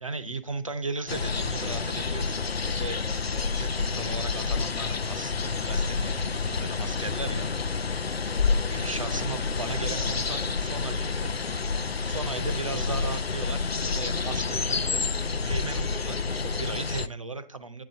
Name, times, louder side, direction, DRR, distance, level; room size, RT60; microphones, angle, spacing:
voice 1, 0.0-3.0 3.5-7.5 7.9-8.1 8.7-11.3 12.1-15.1 15.4-17.8, right 3 dB, 35° right, 10 dB, 0.6 m, -36 dB
sound 1, 1.1-17.1, left 4 dB, 85° left, 0.6 m, -29 dB
9.3 x 3.3 x 6.6 m, 0.39 s
figure-of-eight pair, 160°, 30 cm